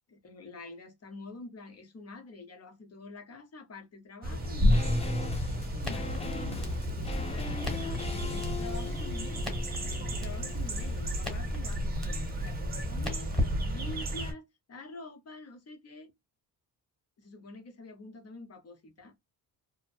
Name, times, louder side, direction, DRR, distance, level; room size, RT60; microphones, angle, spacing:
voice 1, 0.1-4.9 5.5-9.5 9.8-16.1 17.2-19.2, left 2 dB, 40° left, 0.8 m, -47 dB
sound 1, 4.2-14.3, equal, 25° right, 0.7 m, -32 dB
sound 2, 4.4-13.8 14.1-14.2, left 4 dB, 15° left, 0.3 m, -42 dB
Crackle, 5.8-14.1, left 1 dB, ahead, 1.2 m, -39 dB
2.6 x 2.1 x 2.3 m
cardioid pair, 120°, 40 cm